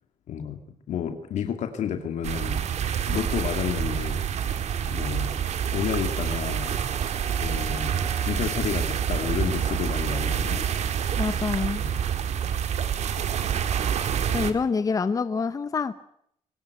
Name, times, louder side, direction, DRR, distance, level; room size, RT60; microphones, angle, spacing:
voice 1, 0.3-2.7 3.1-4.3 4.9-5.4 5.7-6.8 7.4-8.0 8.2-10.7 11.8-12.0, left 8 dB, 70° left, 6 dB, 2.4 m, -31 dB
sound 1, 2.2-14.5, right 8 dB, 60° right, 2.1 m, -27 dB
sound 2, 5.5-11.0, left 2 dB, 15° right, 3.6 m, -49 dB
voice 2, 11.2-11.8 14.3-15.9, left 5 dB, 25° left, 12 dB, 1.0 m, -26 dB
23.0 x 18.0 x 9.4 m, 0.70 s
cardioid pair, 145°, 13 cm